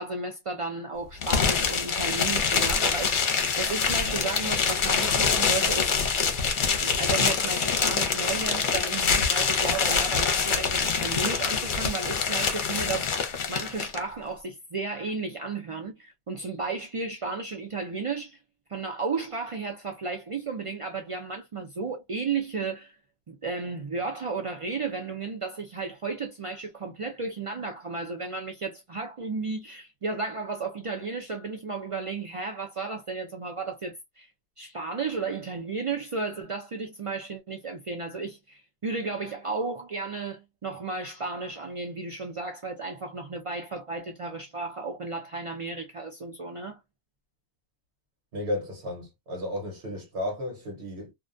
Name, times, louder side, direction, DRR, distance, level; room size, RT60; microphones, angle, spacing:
voice 1, 0.0-6.1 6.8-18.4 18.7-23.0 23.3-34.3 34.6-46.8, right 4 dB, 55° right, 0.3 m, -33 dB
sound 1, 1.2-14.0, left 5 dB, 55° left, 0.7 m, -25 dB
voice 2, 48.3-51.1, left 1 dB, 75° right, 1.2 m, -33 dB
2.4 x 2.2 x 2.4 m
omnidirectional pair, 1.1 m